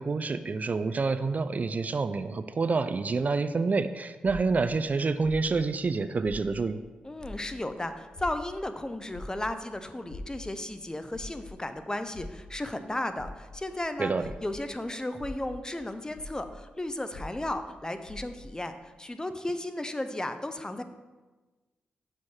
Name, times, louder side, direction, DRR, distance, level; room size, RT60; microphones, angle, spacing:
voice 1, 0.0-6.8 14.0-14.3, right 4 dB, 45° right, 11 dB, 0.3 m, -28 dB
sound 1, 4.2-6.9 7.1-14.7 15.1-18.6, left 2 dB, 75° left, 1.4 m, -44 dB
voice 2, 7.0-14.1 14.4-20.8, left 1 dB, 20° left, 9 dB, 0.6 m, -34 dB
6.3 x 4.7 x 4.2 m, 1.3 s
supercardioid pair, 45°, 4 cm